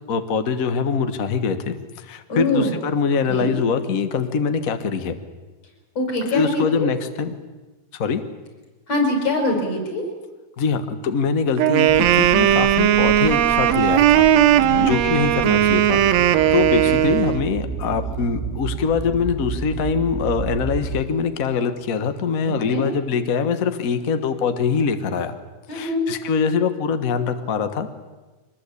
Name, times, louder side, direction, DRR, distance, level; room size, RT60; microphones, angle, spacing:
voice 1, 0.1-5.2 6.3-7.3 7.9-8.2 10.6-14.3 14.8-16.0 16.3-25.4 25.7-27.9, left 5 dB, 85° left, 9 dB, 0.7 m, -23 dB
voice 2, 2.3-2.8 3.3-3.5 6.0-6.9 8.9-10.0 14.5-14.9 22.5-22.8 25.7-26.0, left 2 dB, 45° left, 2 dB, 6.9 m, -23 dB
Wind instrument woodwind instrument, 11.6-17.5, right 11 dB, 70° right, 1.7 m, -17 dB
sound 1, 11.9-21.1, right 4 dB, ahead, 1.4 m, -32 dB
24.0 x 20.5 x 8.5 m, 1.2 s
omnidirectional pair, 3.8 m